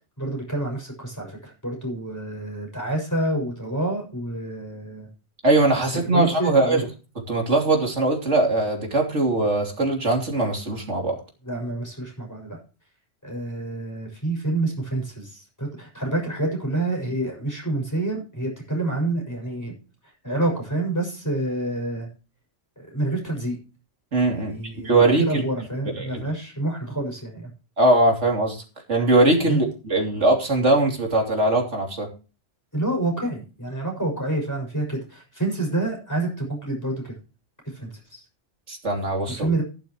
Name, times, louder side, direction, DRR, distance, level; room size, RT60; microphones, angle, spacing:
voice 1, 0.2-5.1 5.8-6.8 11.4-12.6 13.2-19.7 20.2-22.1 22.8-23.6 24.3-27.5 29.4-29.6 32.7-37.1 37.7-38.2 39.3-39.6, right 2 dB, 15° left, 0 dB, 6.6 m, -28 dB
voice 2, 5.4-6.8 7.3-11.2 24.1-24.5 24.8-25.4 26.0-26.3 27.8-28.6 28.9-32.1 38.7-39.5, right 2 dB, 80° right, 1 dB, 3.4 m, -21 dB
14.5 x 11.5 x 3.1 m, 0.33 s
omnidirectional pair, 1.2 m